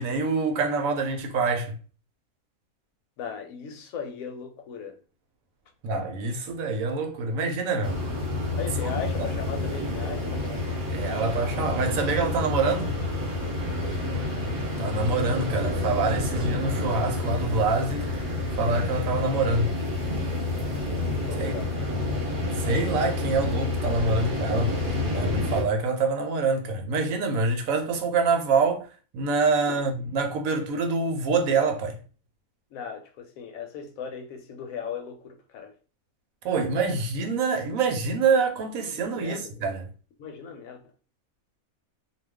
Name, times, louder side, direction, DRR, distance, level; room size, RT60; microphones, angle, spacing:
voice 1, 0.0-1.8 5.8-8.0 8.8-9.3 10.9-13.0 14.8-18.1 18.6-19.7 21.4-21.5 22.5-28.9 29.1-32.0 36.4-39.8, right 4 dB, 75° right, 1.0 m, -26 dB
voice 2, 3.2-5.0 8.6-10.8 13.6-14.3 21.3-21.8 29.7-29.8 32.7-35.8 38.9-39.7 40.2-40.8, left 6 dB, 75° left, 1.0 m, -38 dB
sound 1, 7.8-25.6, left 2 dB, 45° right, 0.8 m, -29 dB
2.4 x 2.3 x 3.4 m
omnidirectional pair, 1.5 m